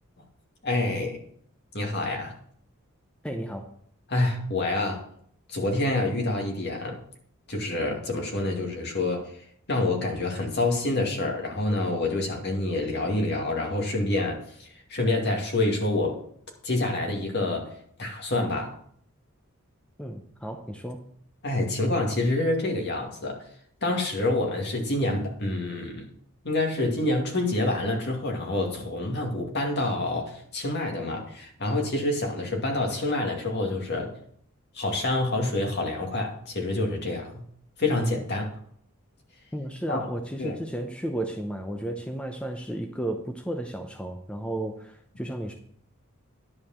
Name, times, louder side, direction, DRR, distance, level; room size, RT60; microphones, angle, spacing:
voice 1, 0.6-1.2 1.7-2.3 4.1-5.0 5.5-7.0 7.5-9.3 9.7-14.4 14.9-16.2 16.6-17.7 18.0-18.8 21.4-23.4 23.8-26.0 26.4-34.1 34.7-37.3 37.8-38.5 39.9-40.0 40.4-40.6, left 2 dB, 55° left, 1 dB, 2.4 m, -27 dB
voice 2, 3.2-3.7 20.0-21.1 39.5-45.5, right 1 dB, 5° left, 4 dB, 0.7 m, -33 dB
11.0 x 4.9 x 7.3 m, 0.63 s
head